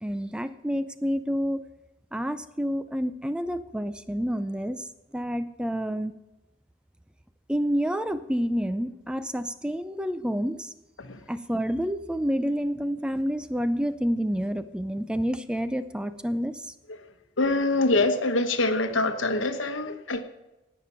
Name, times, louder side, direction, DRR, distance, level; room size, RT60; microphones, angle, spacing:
voice 1, 0.0-1.6 2.1-4.9 5.1-6.1 7.5-10.7 11.3-16.7, equal, 5° right, 11 dB, 0.4 m, -29 dB
voice 2, 17.4-20.2, left 2 dB, 90° left, 8 dB, 1.1 m, -25 dB
17.5 x 6.7 x 5.8 m, 1.0 s
head